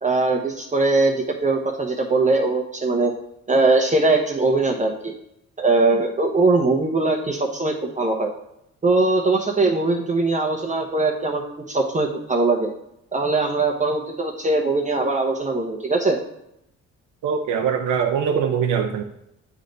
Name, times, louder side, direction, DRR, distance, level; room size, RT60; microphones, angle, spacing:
voice 1, 0.0-1.2 1.4-3.1 3.5-5.1 5.6-8.3 8.8-12.7 13.1-16.2, right 3 dB, 25° right, 1 dB, 0.8 m, -21 dB
voice 2, 17.2-19.0, right 7 dB, 85° right, 2 dB, 0.7 m, -22 dB
9.1 x 3.3 x 3.9 m, 0.79 s
cardioid pair, 90°, 30 cm